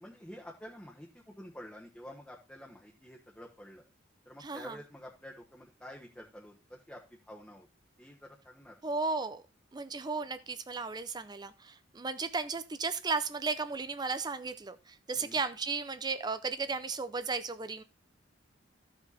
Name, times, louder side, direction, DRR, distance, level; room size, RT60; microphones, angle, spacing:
voice 1, 0.0-3.8 4.2-7.7 8.0-8.8 15.1-15.4, equal, 5° left, -2 dB, 1.2 m, -49 dB
voice 2, 4.4-4.8 8.8-9.4 9.7-17.8, right 4 dB, 20° right, 12 dB, 0.5 m, -35 dB
14.0 x 5.1 x 4.1 m, 0.31 s
head